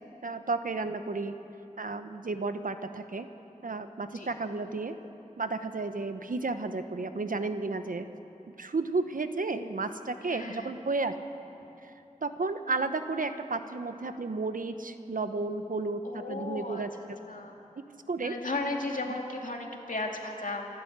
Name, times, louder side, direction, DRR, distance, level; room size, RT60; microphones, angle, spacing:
voice 1, 0.2-1.4 1.8-3.3 3.6-4.9 5.4-8.1 8.6-11.1 11.8-11.9 12.2-16.9 18.1-18.3, right 3 dB, 90° right, 9 dB, 1.0 m, -32 dB
voice 2, 10.3-10.7 16.0-17.6 18.2-20.7, left 2 dB, 75° left, 1 dB, 2.3 m, -35 dB
26.5 x 12.0 x 8.1 m, 2.9 s
wide cardioid pair, 60°, 14 cm